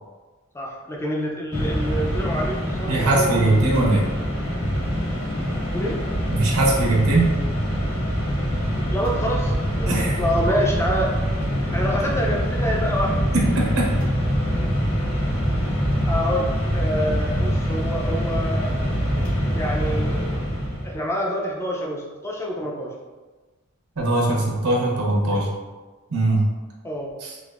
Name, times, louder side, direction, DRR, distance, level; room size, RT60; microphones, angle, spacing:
voice 1, 0.5-3.8 5.6-6.0 8.9-11.1 11.7-13.3 16.0-18.9 19.5-20.3 20.8-22.9 25.3-25.5 26.8-27.1, equal, 10° left, -2 dB, 0.4 m, -27 dB
Mechanisms, 1.5-21.0, equal, 70° left, 1.4 m, -24 dB
voice 2, 2.9-4.0 6.3-7.4 9.9-10.2 13.3-13.8 24.0-25.5 26.1-26.4 27.2-27.3, right 2 dB, 85° right, -3 dB, 0.8 m, -20 dB
3.5 x 2.6 x 2.4 m, 1.3 s
head